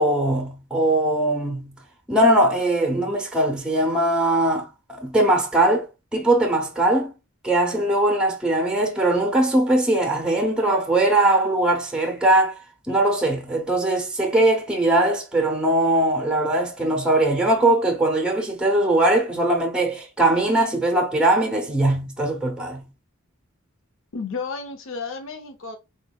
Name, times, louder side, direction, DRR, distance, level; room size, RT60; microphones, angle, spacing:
voice 1, 0.0-1.8 2.1-4.7 5.0-5.9 6.1-7.1 7.4-12.6 12.9-22.9, right 1 dB, 5° right, 0.7 m, -20 dB
voice 2, 24.1-25.8, left 4 dB, 65° left, 0.5 m, -32 dB
3.8 x 2.6 x 2.2 m
head